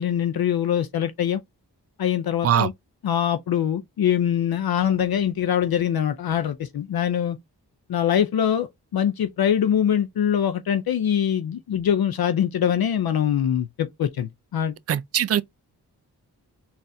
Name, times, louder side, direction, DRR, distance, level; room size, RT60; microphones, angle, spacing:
voice 1, 0.0-1.4 2.0-2.7 3.0-7.4 7.9-14.7, left 9 dB, 65° left, 0.6 m, -23 dB
voice 2, 14.9-15.4, right 9 dB, 40° right, 0.4 m, -21 dB
3.9 x 2.6 x 2.6 m
cardioid pair, 45°, 40 cm